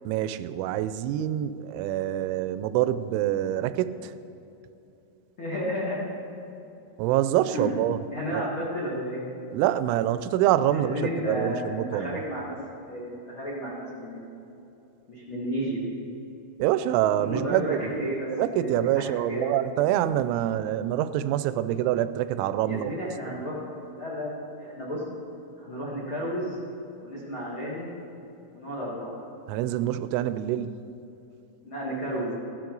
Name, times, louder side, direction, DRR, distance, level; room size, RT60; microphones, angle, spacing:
voice 1, 0.1-4.1 7.0-8.0 8.3-8.5 9.5-12.2 16.6-18.1 18.4-22.9 29.5-30.8, right 12 dB, 85° right, 13 dB, 3.0 m, -26 dB
voice 2, 5.4-6.0 7.4-7.7 8.1-9.2 10.7-12.5 12.9-14.3 15.1-15.8 17.2-18.7 19.3-19.6 22.6-23.6 23.9-25.0 25.6-26.6 27.0-27.9 28.5-29.2 31.6-32.3, equal, 65° left, -6 dB, 1.2 m, -32 dB
16.0 x 12.0 x 3.9 m, 2.9 s
omnidirectional pair, 5.4 m